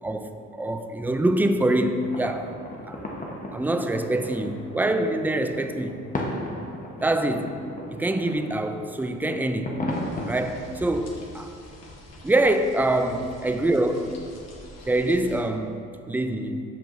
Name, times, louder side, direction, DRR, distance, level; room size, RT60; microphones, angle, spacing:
voice 1, 0.0-2.5 2.9-3.0 3.5-6.0 7.0-7.6 7.9-9.8 10.3-11.5 12.2-14.2 14.9-16.6, right 1 dB, 5° right, 7 dB, 0.4 m, -25 dB
sound 1, 2.0-10.5, left 1 dB, 25° left, 1.0 m, -36 dB
sound 2, 9.9-15.4, left 1 dB, 60° left, 1.3 m, -45 dB
13.0 x 4.7 x 2.6 m, 2.5 s
cardioid pair, 90°, 30 cm